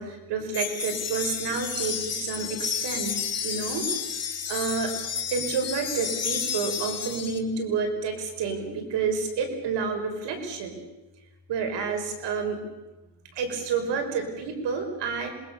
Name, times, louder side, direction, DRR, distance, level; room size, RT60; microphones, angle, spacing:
voice 1, 0.0-3.9 4.5-5.0 5.3-10.8 11.5-12.6 13.3-15.3, right 5 dB, 80° right, 5 dB, 5.5 m, -29 dB
sound 1, 0.5-7.4, left 7 dB, 35° left, 3.3 m, -31 dB
27.0 x 21.0 x 7.0 m, 1.1 s
cardioid pair, 105°, 41 cm